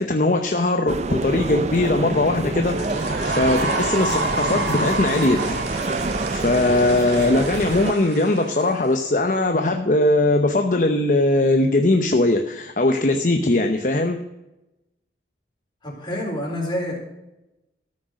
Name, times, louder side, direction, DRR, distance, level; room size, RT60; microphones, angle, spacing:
voice 1, 0.0-5.6 6.3-14.2, left 2 dB, 45° left, 4 dB, 0.8 m, -20 dB
sound 1, 0.9-7.9, right 2 dB, 40° right, 0.5 m, -27 dB
sound 2, 2.6-9.0, right 2 dB, 80° right, 2.4 m, -29 dB
voice 2, 15.8-16.9, left 1 dB, 25° left, -2 dB, 4.1 m, -27 dB
14.0 x 6.4 x 6.1 m, 0.95 s
head